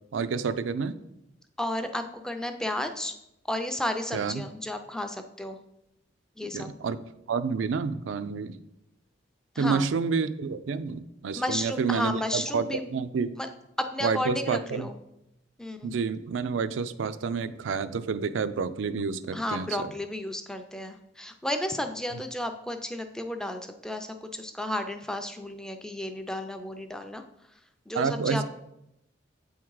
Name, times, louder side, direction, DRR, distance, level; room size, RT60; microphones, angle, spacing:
voice 1, 0.1-0.9 4.1-4.4 6.5-7.0 7.3-8.6 9.6-13.4 14.0-14.9 15.8-19.9 27.9-28.4, right 5 dB, 85° right, 12 dB, 0.4 m, -29 dB
voice 2, 1.6-3.1 3.5-5.6 6.4-6.7 9.6-9.8 11.3-12.9 13.4-13.5 13.8-14.9 15.6-15.9 19.3-27.2 27.9-28.4, left 1 dB, 5° left, 7 dB, 0.4 m, -32 dB
7.9 x 3.6 x 4.7 m, 0.85 s
head